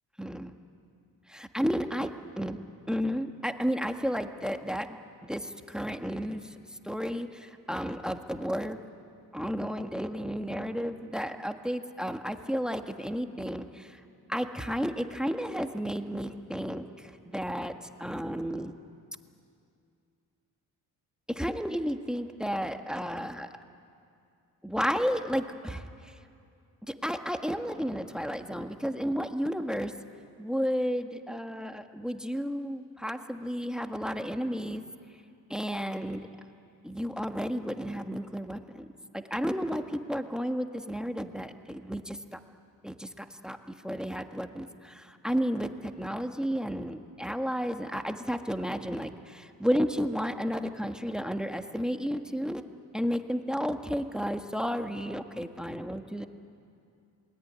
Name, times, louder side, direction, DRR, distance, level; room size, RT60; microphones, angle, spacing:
voice 1, 0.2-0.5 1.3-2.1 2.4-2.6 2.9-5.0 5.2-8.8 9.3-14.0 14.3-17.7 18.0-18.7 21.3-23.5 24.6-26.1 26.9-29.9 30.4-34.8 35.5-36.3 36.8-38.9 39.1-42.4 42.8-52.6 52.9-56.3, equal, ahead, 7 dB, 1.6 m, -32 dB
27.0 x 21.0 x 9.6 m, 2.5 s
supercardioid pair, 70°, 39 cm